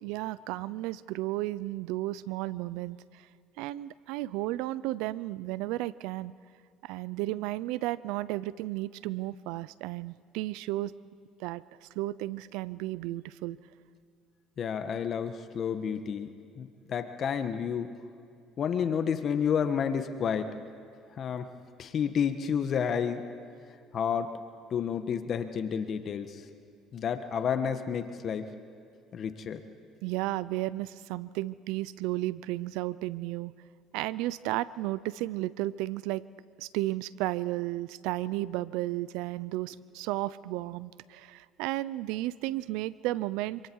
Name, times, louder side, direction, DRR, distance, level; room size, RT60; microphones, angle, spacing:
voice 1, 0.0-3.2 3.6-6.3 6.8-10.9 11.4-13.6 30.0-33.5 33.9-36.2 36.6-43.6, right 17 dB, 80° right, 19 dB, 0.6 m, -33 dB
voice 2, 14.6-16.3 16.6-18.0 18.6-20.5 21.2-21.5 21.8-23.2 23.9-24.4 24.7-26.4 26.9-28.5 29.1-29.6, left 7 dB, 50° left, 8 dB, 1.5 m, -30 dB
27.5 x 26.0 x 4.8 m, 2.3 s
supercardioid pair, 85°, 0 cm